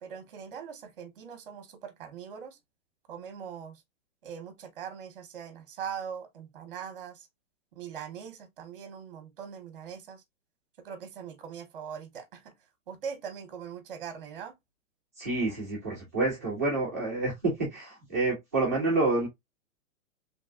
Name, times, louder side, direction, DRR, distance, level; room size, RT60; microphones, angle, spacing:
voice 1, 0.0-2.6 3.1-3.8 4.2-7.3 7.7-10.2 10.8-12.5 12.9-14.6, right 7 dB, 40° right, 0.8 m, -41 dB
voice 2, 15.2-19.3, right 3 dB, 10° right, 0.5 m, -28 dB
3.1 x 2.8 x 2.3 m
hypercardioid pair, 170°, 41 cm